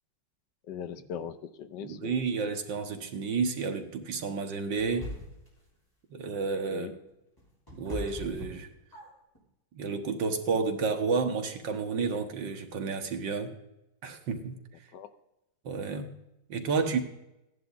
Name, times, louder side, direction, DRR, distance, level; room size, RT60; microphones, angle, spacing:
voice 1, 0.7-2.2 6.7-6.9 14.9-15.1, left 8 dB, 75° left, 11 dB, 1.4 m, -40 dB
voice 2, 1.8-5.1 6.1-6.9 7.7-8.7 9.7-13.5 14.0-14.6 15.7-16.2 16.5-17.0, right 5 dB, 80° right, 5 dB, 2.0 m, -31 dB
sound 1, 4.8-5.6 7.1-9.4, left 1 dB, 10° left, 3.4 m, -41 dB
15.5 x 10.5 x 4.0 m, 0.90 s
omnidirectional pair, 2.0 m